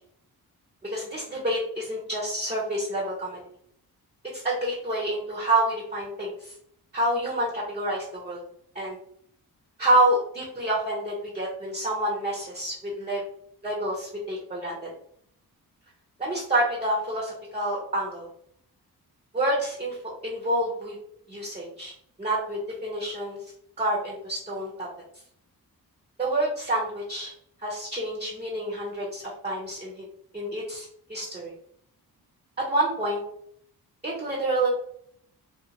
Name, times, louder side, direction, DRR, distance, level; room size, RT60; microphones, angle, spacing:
voice 1, 0.8-3.4 4.3-6.5 6.9-8.4 8.7-9.0 9.8-13.2 13.6-14.9 16.2-18.3 19.3-20.0 20.2-21.0 21.3-21.9 22.2-23.4 23.8-24.9 26.2-27.3 27.6-30.0 30.3-31.5 32.6-33.2 34.0-34.7, right 1 dB, 15° right, -4 dB, 0.8 m, -28 dB
2.6 x 2.4 x 2.8 m, 0.67 s
cardioid pair, 80°, 38 cm